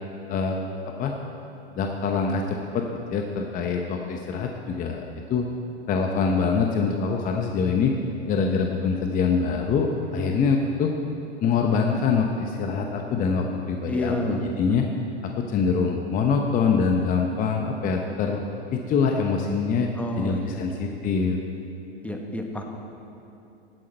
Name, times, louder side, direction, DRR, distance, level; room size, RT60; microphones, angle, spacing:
voice 1, 1.7-2.8 3.1-5.0 5.3-5.5 5.9-7.9 8.3-10.9 11.4-14.9 15.2-18.4 18.7-19.9 20.2-21.4, left 5 dB, 25° left, 2 dB, 0.8 m, -24 dB
voice 2, 13.9-14.4 20.0-20.7 22.0-22.6, left 1 dB, 5° left, 2 dB, 1.1 m, -30 dB
16.5 x 8.5 x 4.4 m, 2.8 s
hypercardioid pair, 115°, 33 cm